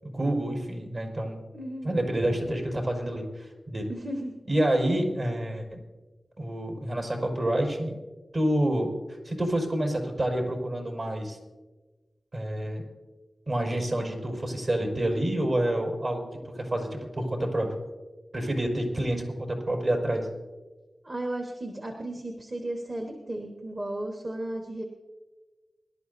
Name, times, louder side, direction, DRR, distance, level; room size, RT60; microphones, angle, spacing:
voice 1, 0.0-1.4 1.8-3.9 4.5-5.8 6.4-7.9 8.3-8.9 9.2-11.4 12.3-12.8 13.5-16.2 16.5-17.8 18.3-20.3, right 1 dB, 60° right, 1 dB, 5.0 m, -28 dB
voice 2, 1.5-2.0 3.9-4.3 21.0-24.8, right 1 dB, 45° right, 3 dB, 1.5 m, -34 dB
23.5 x 12.0 x 2.7 m, 1.2 s
wide cardioid pair, 65°, 0 cm